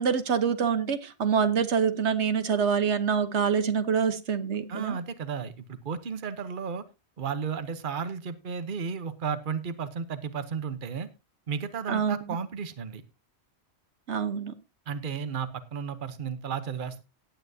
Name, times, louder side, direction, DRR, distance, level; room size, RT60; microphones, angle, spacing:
voice 1, 0.0-5.0 11.9-12.2 14.1-14.5, right 6 dB, 80° right, 11 dB, 1.4 m, -26 dB
voice 2, 4.7-6.8 7.2-11.1 11.5-13.0 14.9-17.0, right 6 dB, 50° right, 11 dB, 1.1 m, -33 dB
17.0 x 8.9 x 2.7 m, 0.26 s
omnidirectional pair, 1.1 m